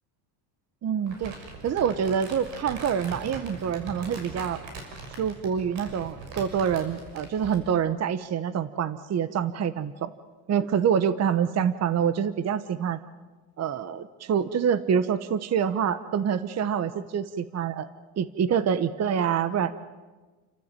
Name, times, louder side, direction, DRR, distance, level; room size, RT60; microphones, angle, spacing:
voice 1, 0.8-1.3 1.6-4.6 5.2-10.1 10.5-13.0 13.6-17.9 18.2-19.7, right 8 dB, 30° right, 14 dB, 1.1 m, -26 dB
Crumpling crinkling, 1.1-7.7, right 3 dB, 60° right, 6.5 m, -41 dB
30.0 x 14.0 x 9.0 m, 1.3 s
supercardioid pair, 115°, 49 cm